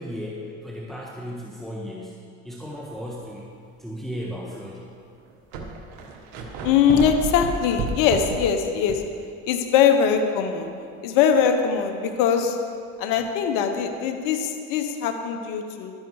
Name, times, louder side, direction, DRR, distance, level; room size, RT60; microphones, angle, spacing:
voice 1, 0.0-3.5 3.8-4.9, equal, ahead, -3 dB, 1.5 m, -35 dB
sound 1, 3.0-3.2 3.9-4.0 4.9-5.0 5.2-9.2 9.5-9.6 13.2-13.3, right 3 dB, 80° right, 1.5 m, -32 dB
voice 2, 6.6-9.0 9.5-10.7 11.0-12.6 13.0-15.9, left 7 dB, 75° left, 6 dB, 1.1 m, -21 dB
12.0 x 10.0 x 4.8 m, 2.3 s
supercardioid pair, 90°, 33 cm